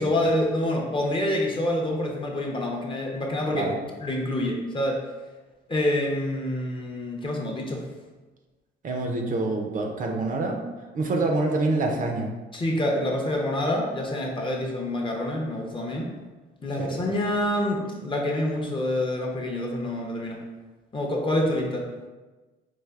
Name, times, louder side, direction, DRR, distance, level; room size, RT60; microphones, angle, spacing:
voice 1, 0.0-3.7 4.0-5.0 5.7-7.9 12.5-16.1 16.6-20.4 20.9-21.9, left 1 dB, 25° left, 0 dB, 0.6 m, -27 dB
voice 2, 8.8-10.6 10.9-12.3 16.8-17.1, right 2 dB, 40° right, 2 dB, 0.5 m, -26 dB
4.7 x 2.4 x 2.3 m, 1.2 s
cardioid pair, 90°, 20 cm